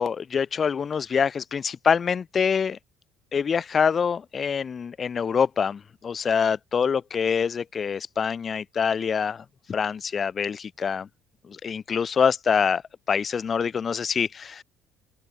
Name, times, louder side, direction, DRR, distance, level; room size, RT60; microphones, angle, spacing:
voice 1, 0.0-2.8 3.3-11.1 11.5-12.8 13.1-14.6, left 6 dB, 35° left, 2.9 m, -25 dB
open air
cardioid pair, 115°, 0 cm